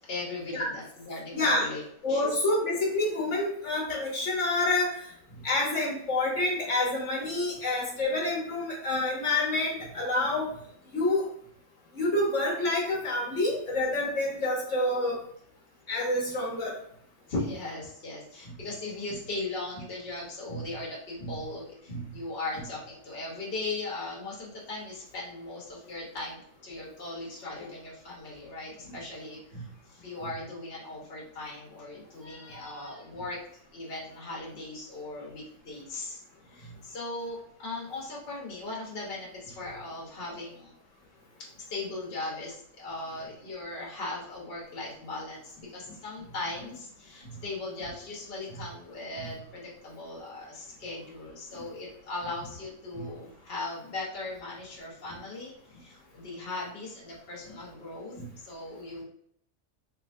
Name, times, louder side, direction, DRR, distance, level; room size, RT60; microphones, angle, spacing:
voice 1, 0.0-1.8 2.1-2.3 17.3-33.4 33.7-40.7 41.7-58.1 58.4-59.0, left 2 dB, 55° left, -4 dB, 1.1 m, -38 dB
voice 2, 1.3-1.6 2.0-5.1 5.4-10.5 10.9-11.3 11.9-15.2 15.9-16.7 20.5-20.6 21.2-21.3 21.9-22.0 28.8-28.9 29.5-29.6 49.2-49.3 52.9-53.1 58.1-58.3, left 2 dB, 75° left, -2 dB, 1.4 m, -28 dB
3.2 x 3.1 x 2.5 m, 0.65 s
omnidirectional pair, 1.3 m